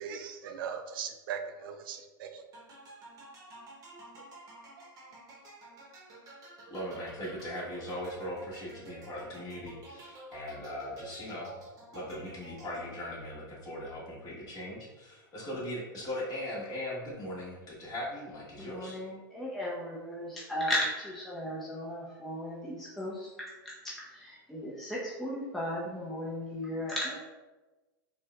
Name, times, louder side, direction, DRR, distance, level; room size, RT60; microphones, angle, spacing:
voice 1, 0.0-2.4 4.8-4.9, right 7 dB, 75° right, 7 dB, 0.4 m, -39 dB
sound 1, 2.5-13.2, right 2 dB, 30° right, 0.9 m, -50 dB
voice 2, 6.7-11.5 11.9-19.0, left 1 dB, 35° left, -6 dB, 1.4 m, -39 dB
voice 3, 18.6-27.2, equal, ahead, -7 dB, 0.6 m, -36 dB
4.3 x 2.2 x 2.3 m, 1.1 s
hypercardioid pair, 120°, 12 cm